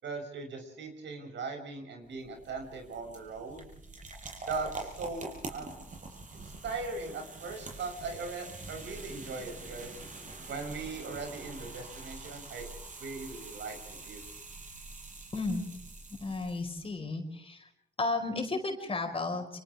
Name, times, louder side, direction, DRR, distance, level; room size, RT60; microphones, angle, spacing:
voice 1, 0.0-3.7 4.5-5.7 6.4-10.0 10.5-12.7 13.0-14.2, right 4 dB, 65° right, 4 dB, 6.9 m, -39 dB
sound 1, 2.0-16.9, right 3 dB, 40° right, 6.9 m, -45 dB
voice 2, 15.3-15.6 16.2-17.6 18.0-19.6, left 3 dB, 30° left, 4 dB, 4.9 m, -33 dB
30.0 x 27.0 x 3.6 m, 0.73 s
cardioid pair, 90°, 20 cm